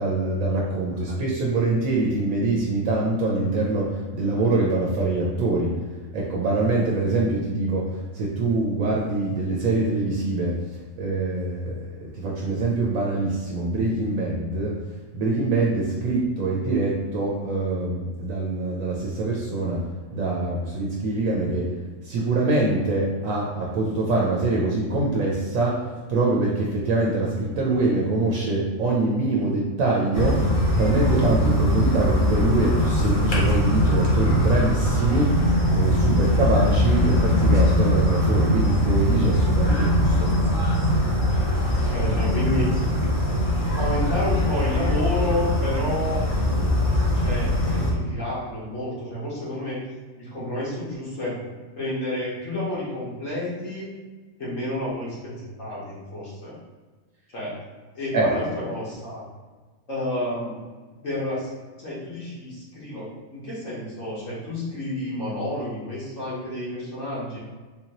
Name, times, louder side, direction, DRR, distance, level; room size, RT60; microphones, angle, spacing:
voice 1, 0.0-5.8 6.1-10.6 11.0-14.8 15.1-21.7 22.0-30.5 30.8-35.4 35.7-40.3 58.1-58.3, right 2 dB, 75° right, -3 dB, 1.0 m, -24 dB
sound 1, 30.1-47.9, left 1 dB, 45° left, 0.9 m, -21 dB
voice 2, 41.9-42.7 43.7-46.2 47.2-49.8 50.2-51.4 51.8-53.9 54.4-56.6 57.3-57.6 57.9-59.2 59.9-60.6 61.0-61.5 61.8-67.4, left 1 dB, 65° left, -8 dB, 1.4 m, -30 dB
3.7 x 2.9 x 2.8 m, 1.4 s
omnidirectional pair, 1.5 m